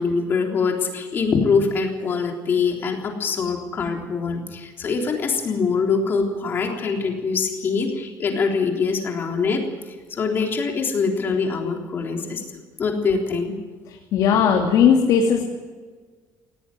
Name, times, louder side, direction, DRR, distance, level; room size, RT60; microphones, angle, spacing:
voice 1, 0.0-9.6 10.2-12.4 12.8-13.5, left 5 dB, 30° left, 2 dB, 3.6 m, -23 dB
voice 2, 14.1-15.5, left 7 dB, 65° left, 1 dB, 2.7 m, -18 dB
18.5 x 17.5 x 7.8 m, 1.4 s
cardioid pair, 175°, 7 cm